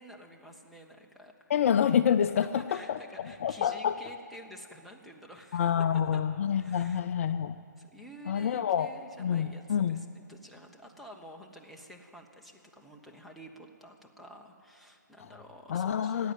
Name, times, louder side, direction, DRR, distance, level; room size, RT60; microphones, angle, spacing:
voice 1, 0.0-1.5 2.6-5.8 6.1-6.2 6.6-7.0 7.8-16.2, equal, ahead, 0 dB, 1.0 m, -50 dB
voice 2, 1.5-4.0 5.5-7.6 8.3-8.9 9.2-10.0 15.2-15.3 15.7-16.3, left 8 dB, 45° left, 10 dB, 0.5 m, -27 dB
16.0 x 9.2 x 9.3 m, 3.0 s
hypercardioid pair, 145°, 10 cm